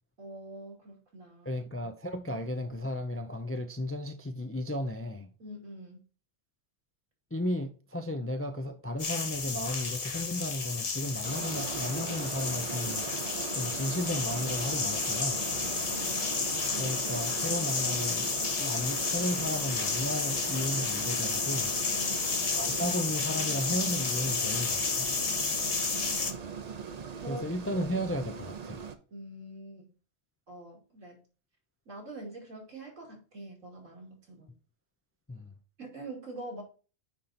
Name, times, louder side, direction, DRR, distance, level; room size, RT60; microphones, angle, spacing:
voice 1, 0.2-1.6 2.3-2.4 5.4-6.0 15.6-16.3 21.9-22.3 25.6-26.6 27.2-27.5 29.1-29.9 30.5-31.2 31.9-34.5 35.8-36.6, right 1 dB, 85° right, 3.0 m, -45 dB
voice 2, 1.4-5.3 7.3-13.1 13.5-15.4 16.8-18.3 18.6-21.8 22.6-25.2 27.3-28.9 35.3-35.5, left 1 dB, 20° left, 0.4 m, -34 dB
sound 1, 9.0-26.3, left 4 dB, 35° left, 0.7 m, -31 dB
sound 2, 11.2-29.0, right 6 dB, 40° right, 0.6 m, -40 dB
9.2 x 3.9 x 4.2 m
omnidirectional pair, 1.3 m